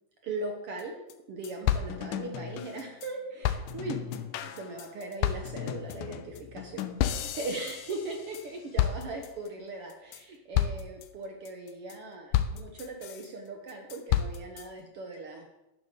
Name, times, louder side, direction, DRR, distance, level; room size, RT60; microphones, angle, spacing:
voice 1, 0.2-15.5, right 2 dB, 65° right, 2 dB, 1.5 m, -39 dB
sound 1, 0.8-0.9 1.1-1.2 1.4-3.1 3.4-8.5 8.8-9.5 9.9-10.2 10.5-11.1 11.5-11.9 12.3-13.3 13.7-14.7, left 11 dB, 80° left, 2.1 m, -31 dB
12.0 x 9.9 x 3.7 m, 0.93 s
omnidirectional pair, 3.8 m